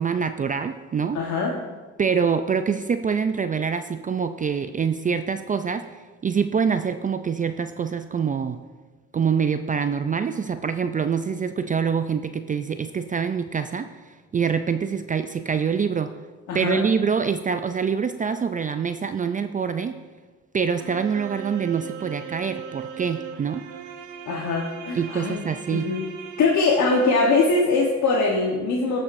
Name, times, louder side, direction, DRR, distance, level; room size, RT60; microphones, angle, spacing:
voice 1, 0.0-1.2 2.0-5.8 6.2-8.6 9.1-13.9 14.3-16.1 16.5-20.0 20.5-23.7 24.9-25.9, right 6 dB, 30° right, 9 dB, 0.4 m, -25 dB
voice 2, 1.1-1.5 16.5-16.8 24.3-25.4 25.7-26.0 26.4-29.0, left 3 dB, 70° left, -2 dB, 1.2 m, -22 dB
sound 1, 20.8-28.0, right 7 dB, 85° right, 0.8 m, -38 dB
15.5 x 5.7 x 2.6 m, 1.4 s
cardioid pair, 90°, 30 cm